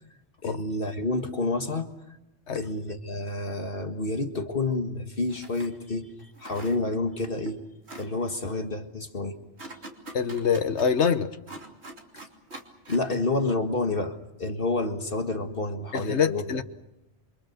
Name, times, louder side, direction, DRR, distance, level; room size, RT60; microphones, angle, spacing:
voice 1, 0.4-1.9 2.5-7.6 8.0-9.4 12.1-12.2 12.9-16.4, left 2 dB, 50° left, 5 dB, 1.9 m, -29 dB
sound 1, 5.3-5.7 6.2-7.1 7.5-7.6 7.9-8.1 9.6-10.9 11.5-13.1, right 2 dB, 70° right, 3.3 m, -43 dB
voice 2, 10.1-11.3 15.9-16.6, left 7 dB, 75° left, 10 dB, 1.5 m, -25 dB
28.0 x 25.0 x 6.6 m, 0.91 s
omnidirectional pair, 1.2 m